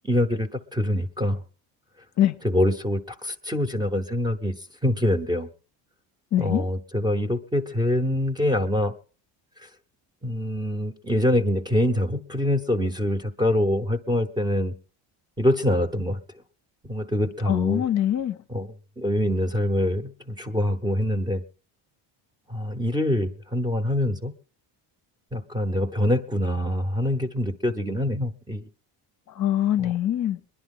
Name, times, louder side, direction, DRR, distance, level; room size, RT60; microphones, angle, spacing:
voice 1, 0.0-1.4 2.4-4.6 4.8-5.5 6.4-8.9 9.6-9.7 10.2-14.7 15.4-16.2 16.8-17.8 18.5-21.4 22.5-24.3 25.3-28.7 29.8-29.9, left 1 dB, 10° right, 0.8 m, -25 dB
voice 2, 6.3-6.7 17.5-18.4 29.4-30.4, left 11 dB, 40° left, 0.7 m, -23 dB
23.5 x 11.0 x 3.8 m
cardioid pair, 155°, 44 cm